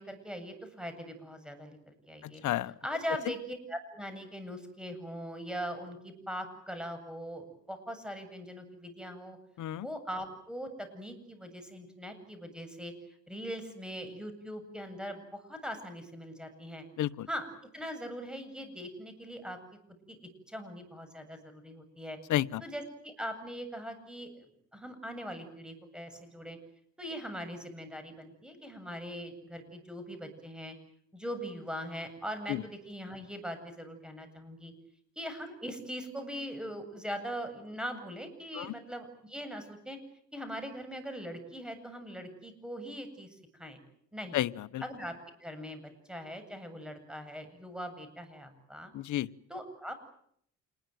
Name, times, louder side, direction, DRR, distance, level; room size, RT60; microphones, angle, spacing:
voice 1, 0.0-2.4 2.8-9.4 9.8-12.9 13.3-16.8 17.3-17.5 17.7-19.6 20.1-20.2 20.5-22.2 22.6-26.6 27.0-30.7 31.1-34.7 35.2-40.0 40.3-43.8 44.1-44.4 44.8-45.1 45.4-45.8 46.1-48.9 49.5-49.9, equal, 5° right, 8 dB, 7.8 m, -41 dB
voice 2, 2.2-2.7 9.6-9.9 17.0-17.3 22.3-22.6 32.5-32.6 38.5-38.7 44.3-44.8 48.9-49.3, left 14 dB, 75° left, 13 dB, 1.0 m, -31 dB
27.5 x 21.0 x 9.2 m, 0.69 s
cardioid pair, 90°, 30 cm